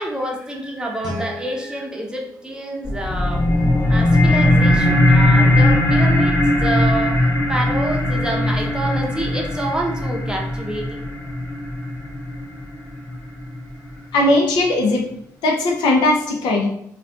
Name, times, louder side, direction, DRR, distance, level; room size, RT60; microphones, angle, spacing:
voice 1, 0.0-3.5 3.9-11.0, right 1 dB, 10° right, 1 dB, 0.7 m, -27 dB
Guitar, 1.0-3.8, left 1 dB, 60° right, 0.7 m, -37 dB
sound 1, 2.8-13.8, left 1 dB, 40° left, 1.2 m, -18 dB
voice 2, 14.1-15.1 15.4-16.7, left 2 dB, 85° left, 0 dB, 0.6 m, -18 dB
2.5 x 2.3 x 3.5 m, 0.70 s
cardioid pair, 75°, 7 cm